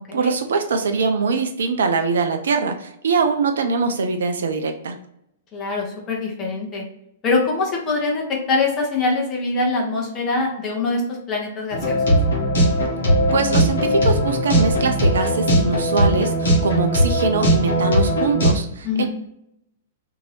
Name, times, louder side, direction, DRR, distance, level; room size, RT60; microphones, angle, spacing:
voice 1, 0.1-5.0 13.3-19.1, right 4 dB, 65° right, 5 dB, 0.3 m, -22 dB
voice 2, 5.5-6.8 7.2-12.0 18.8-19.1, left 3 dB, 25° left, -2 dB, 0.8 m, -23 dB
sound 1, 11.7-18.5, right 1 dB, 65° left, 1.0 m, -19 dB
2.7 x 2.6 x 3.1 m, 0.77 s
figure-of-eight pair, 105°, 0 cm